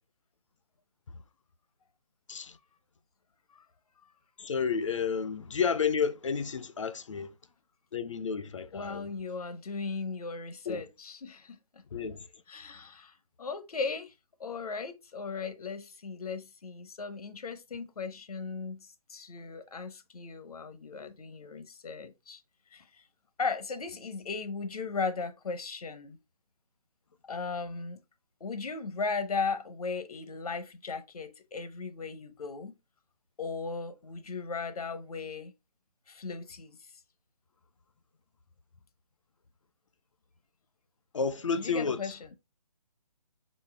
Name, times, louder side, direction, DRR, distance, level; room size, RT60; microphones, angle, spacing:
voice 1, 4.4-7.3 7.9-9.1 10.7-10.8 11.9-12.2 41.1-42.0, left 6 dB, 50° left, 0.5 m, -31 dB
voice 2, 8.7-11.8 12.5-14.1 14.4-22.4 22.7-23.0 23.4-26.2 27.2-28.0 28.4-32.7 33.4-35.5 36.1-36.8 41.6-42.4, left 4 dB, 70° left, 0.8 m, -37 dB
4.2 x 3.9 x 3.2 m
hypercardioid pair, 175°, 20 cm